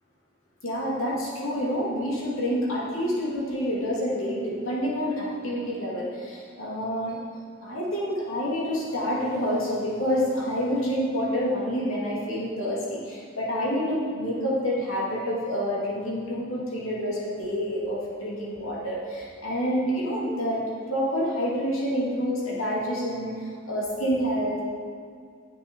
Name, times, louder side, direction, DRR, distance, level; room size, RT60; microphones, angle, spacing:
voice 1, 0.6-7.2 7.6-20.6 20.9-24.7, equal, 80° left, -6 dB, 2.6 m, -28 dB
9.2 x 7.5 x 4.6 m, 2.2 s
head